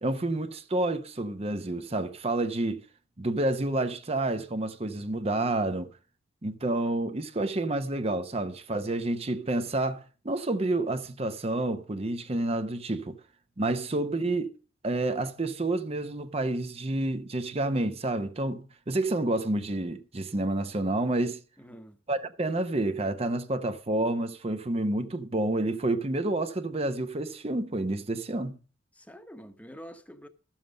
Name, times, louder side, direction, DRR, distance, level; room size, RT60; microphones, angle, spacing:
voice 1, 0.0-2.8 3.2-5.9 6.4-13.2 13.6-14.5 14.8-21.4 22.1-28.6, right 2 dB, 30° right, 0.8 m, -29 dB
voice 2, 21.6-22.0 28.9-30.3, equal, 10° left, 1.0 m, -47 dB
12.5 x 7.4 x 6.4 m
head